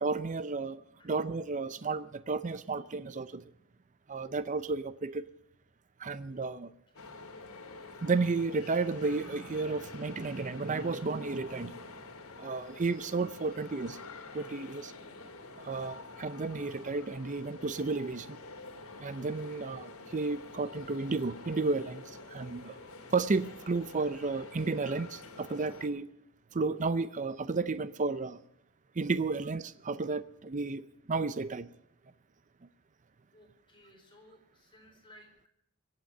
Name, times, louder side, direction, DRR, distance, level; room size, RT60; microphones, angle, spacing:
voice 1, 0.0-3.5 4.1-5.3 6.0-6.7 8.0-11.7 12.4-14.0 14.3-14.9 15.6-18.4 19.0-22.8 23.1-26.1 26.5-28.4 29.0-31.7, right 3 dB, 35° right, 15 dB, 0.5 m, -32 dB
voice 2, 6.9-7.3 33.3-35.5, left 1 dB, 25° left, 1 dB, 4.5 m, -59 dB
sound 1, 7.0-25.9, left 3 dB, 75° left, 2.2 m, -48 dB
23.0 x 8.9 x 6.6 m, 0.75 s
head